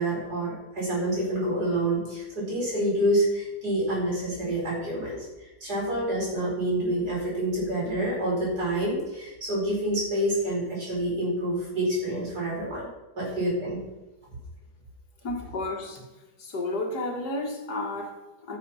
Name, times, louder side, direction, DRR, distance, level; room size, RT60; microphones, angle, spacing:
voice 1, 0.0-12.9 13.2-13.8, right 1 dB, 80° right, -6 dB, 5.3 m, -27 dB
voice 2, 15.2-16.1 16.4-18.6, left 2 dB, 85° left, 1 dB, 2.5 m, -32 dB
13.0 x 6.8 x 5.6 m, 1.1 s
omnidirectional pair, 1.7 m